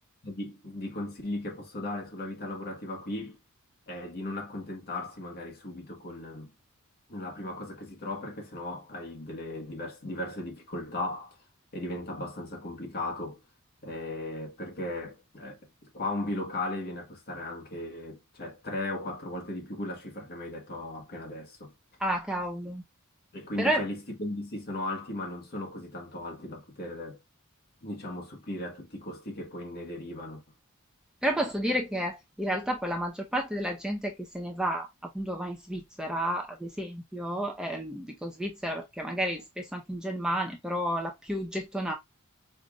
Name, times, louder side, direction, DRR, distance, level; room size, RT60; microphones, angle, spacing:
voice 1, 0.2-3.4 3.9-6.5 7.1-11.4 11.7-13.4 13.8-21.7 22.6-22.7 23.3-27.2 27.8-30.4, left 1 dB, 45° left, 1.3 m, -37 dB
voice 2, 22.0-22.8 23.6-23.8 31.2-41.9, equal, 5° right, 0.6 m, -31 dB
5.2 x 2.6 x 2.3 m
head